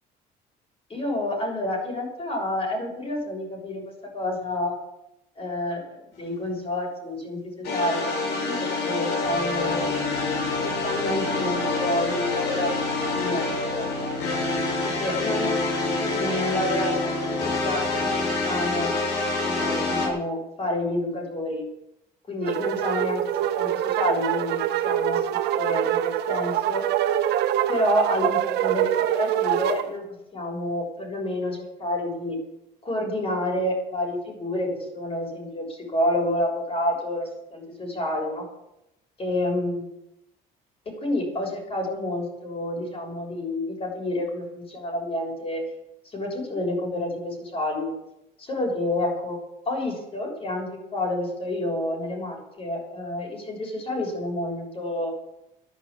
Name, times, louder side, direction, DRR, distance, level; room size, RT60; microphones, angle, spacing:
voice 1, 0.9-3.8 4.1-4.8 5.4-10.0 10.6-12.8 13.1-14.1 14.8-15.6 16.0-18.1 18.4-18.9 19.4-21.6 22.3-23.2 23.5-24.6 24.8-26.8 27.7-30.0 30.3-32.4 32.8-38.5 39.2-39.9 41.0-45.6 46.1-47.9 48.4-49.4 49.7-55.1, left 1 dB, 35° left, 0 dB, 7.1 m, -29 dB
sound 1, 7.6-20.1, left 3 dB, 85° left, 6.1 m, -26 dB
sound 2, 22.4-29.8, right 11 dB, 80° right, 1.2 m, -24 dB
12.0 x 11.0 x 8.8 m, 0.87 s
cardioid pair, 110°, 17 cm